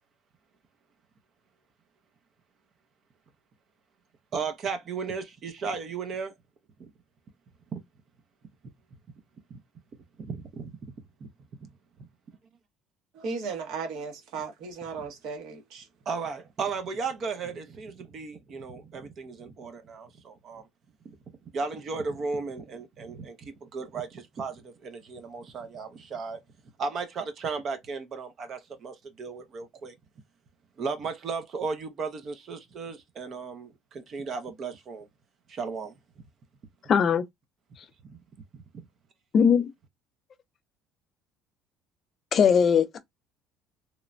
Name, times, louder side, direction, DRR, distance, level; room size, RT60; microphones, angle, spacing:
voice 1, 4.3-6.3 6.8-6.9 7.7-7.8 9.5-9.6 10.2-10.7 11.2-11.3 11.6-11.7 16.1-20.7 21.5-26.4 26.8-29.9 30.8-35.1 35.5-35.9 38.1-38.2 38.5-38.6, right 4 dB, 35° right, 0.5 m, -35 dB
voice 2, 13.1-15.9, right 4 dB, 65° right, 1.0 m, -36 dB
voice 3, 36.9-37.2 39.3-39.6 42.3-43.0, left 7 dB, 30° left, 0.4 m, -20 dB
2.9 x 2.1 x 2.4 m
cardioid pair, 160°, 0 cm